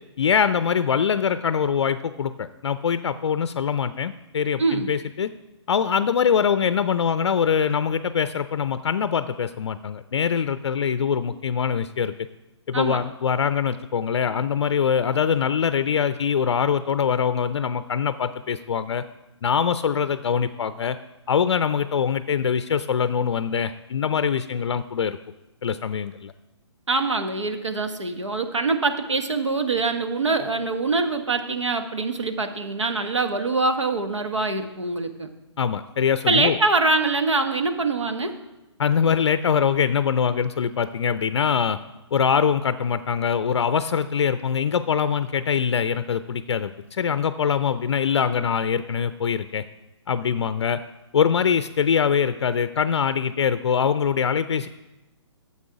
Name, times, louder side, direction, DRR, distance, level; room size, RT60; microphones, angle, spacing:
voice 1, 0.2-5.3 5.7-12.1 12.7-19.0 19.4-21.0 21.3-25.2 25.6-26.3 35.6-36.6 38.8-41.8 42.1-49.6 50.1-50.8 51.1-54.7, left 7 dB, 65° left, 13 dB, 0.4 m, -23 dB
voice 2, 4.6-4.9 12.7-13.0 26.9-35.3 36.3-38.3, right 3 dB, 85° right, 7 dB, 1.2 m, -24 dB
9.8 x 7.3 x 4.8 m, 1.0 s
figure-of-eight pair, 140°, 15 cm